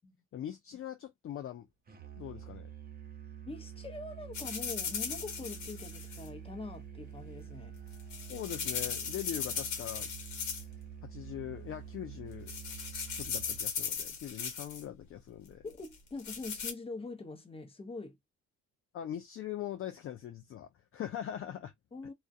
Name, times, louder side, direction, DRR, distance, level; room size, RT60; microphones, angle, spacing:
voice 1, 0.3-1.7 2.2-2.7 8.3-10.1 11.0-12.6 13.1-15.6 18.9-21.7, left 11 dB, 45° left, 0.4 m, -41 dB
Musical instrument, 1.9-13.7, right 9 dB, 30° right, 0.7 m, -48 dB
voice 2, 3.5-7.7 15.6-18.2 21.9-22.1, left 3 dB, 20° left, 0.7 m, -43 dB
sound 1, 4.3-6.3 7.8-10.8 11.1-11.5 12.0-12.2 12.5-14.8 15.8-16.7, left 6 dB, 70° left, 1.1 m, -38 dB
2.3 x 2.1 x 2.5 m
cardioid pair, 90°, 30 cm